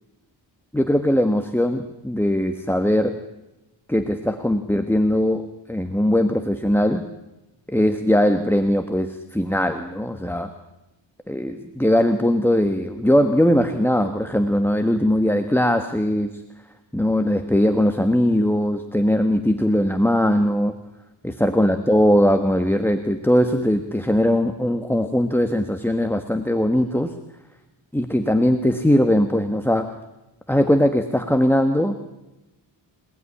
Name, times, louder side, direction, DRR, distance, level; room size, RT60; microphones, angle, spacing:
voice 1, 0.7-3.2 3.9-7.0 7.7-10.5 11.3-16.4 16.9-20.7 21.2-27.1 27.9-30.0 30.5-31.9, equal, 5° left, 6 dB, 1.4 m, -20 dB
27.5 x 19.0 x 9.9 m, 0.98 s
wide cardioid pair, 120°, 46 cm